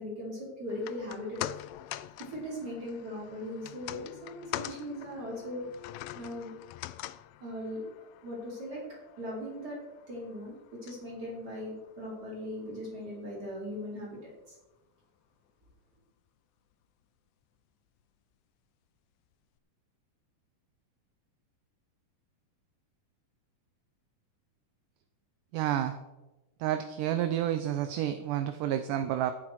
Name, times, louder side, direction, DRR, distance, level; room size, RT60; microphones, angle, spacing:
voice 1, 0.0-1.4 2.3-5.6 6.1-6.5 7.4-7.8 8.2-8.8 9.2-9.8 10.1-10.5 10.8-14.6, left 1 dB, 30° right, -5 dB, 4.9 m, -39 dB
sound 1, 0.7-13.1 13.4-13.5, left 15 dB, 85° left, 2.2 m, -44 dB
voice 2, 25.5-26.0 26.6-29.3, right 11 dB, 80° right, 9 dB, 2.2 m, -30 dB
14.0 x 10.5 x 4.7 m, 1.1 s
omnidirectional pair, 3.9 m